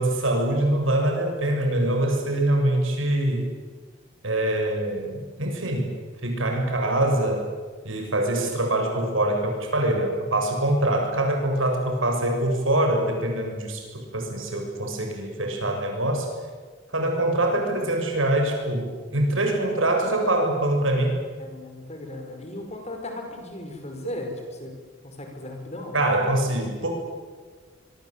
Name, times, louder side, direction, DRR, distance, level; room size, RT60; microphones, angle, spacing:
voice 1, 0.0-3.5 4.2-5.9 6.2-7.5 7.8-16.3 16.9-21.2 25.9-26.9, right 1 dB, 80° right, 3 dB, 7.1 m, -24 dB
voice 2, 21.4-24.7 25.0-26.0, left 1 dB, 35° left, 4 dB, 5.5 m, -36 dB
26.0 x 23.5 x 8.9 m, 1.5 s
head